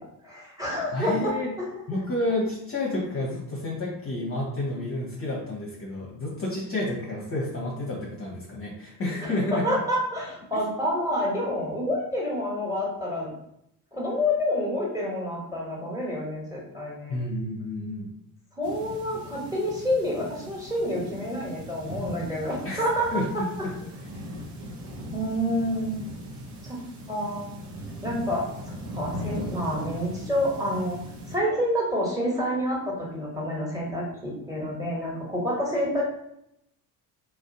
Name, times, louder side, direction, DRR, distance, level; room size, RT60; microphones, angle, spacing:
voice 1, 0.2-1.7 9.2-13.3 13.9-17.2 18.6-23.1 23.6-23.7 25.1-25.9 26.6-26.8 27.1-27.5 28.0-31.0 31.3-36.0, equal, 5° right, -4 dB, 1.0 m, -28 dB
voice 2, 0.9-1.5 1.9-9.7 17.1-18.1 22.6-23.3 23.6-23.7, left 2 dB, 30° left, -3 dB, 0.7 m, -30 dB
sound 1, 18.6-31.4, equal, 60° right, 0.7 m, -39 dB
2.5 x 2.0 x 2.6 m, 0.76 s
hypercardioid pair, 55°, 49 cm